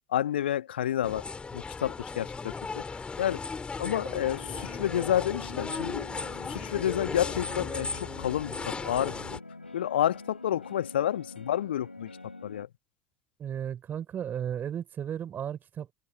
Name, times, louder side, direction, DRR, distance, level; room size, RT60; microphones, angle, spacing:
voice 1, 0.1-1.3 1.5-3.4 3.8-6.1 6.5-9.2 9.7-12.1 12.4-12.7, left 11 dB, 70° left, 1.6 m, -30 dB
sound 1, 1.0-9.4, left 4 dB, 20° left, 2.9 m, -36 dB
sound 2, 4.1-12.7, left 2 dB, 85° left, 3.6 m, -46 dB
voice 2, 13.4-15.9, right 9 dB, 35° right, 5.5 m, -34 dB
figure-of-eight pair, 75°, 6 cm